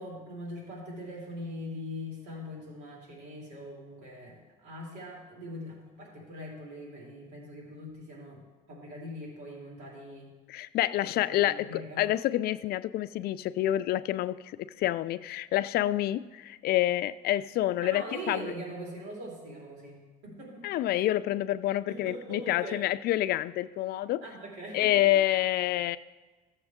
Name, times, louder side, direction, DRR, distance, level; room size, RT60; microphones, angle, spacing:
voice 1, 0.0-10.3 11.3-12.1 17.8-20.6 21.9-22.8 24.2-25.0, equal, 80° right, -3 dB, 3.3 m, -42 dB
voice 2, 10.5-18.4 20.6-24.2 24.7-26.0, left 14 dB, 65° left, 15 dB, 0.4 m, -28 dB
15.0 x 7.1 x 3.6 m, 1.2 s
cardioid pair, 110°, 17 cm